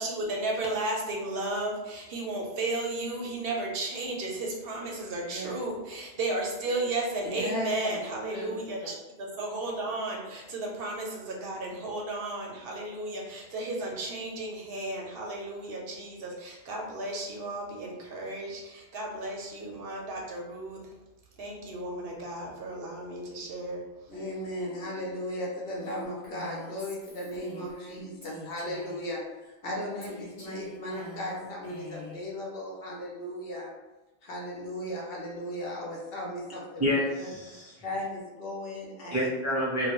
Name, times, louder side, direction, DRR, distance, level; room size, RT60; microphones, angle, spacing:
voice 1, 0.0-9.0 9.4-20.8 21.4-23.8, right 2 dB, 70° right, -1 dB, 0.7 m, -34 dB
voice 2, 7.2-8.0 8.3-8.6 24.1-33.7 34.2-37.0 37.8-39.2, left 1 dB, 65° left, -3 dB, 0.9 m, -36 dB
Female speech woman speaking, 25.8-29.1 30.0-32.2, equal, 40° left, 0.6 m, -45 dB
voice 3, 36.5-37.8 39.1-39.9, left 1 dB, 25° right, -8 dB, 0.4 m, -29 dB
2.2 x 2.1 x 2.9 m, 1.1 s
omnidirectional pair, 1.1 m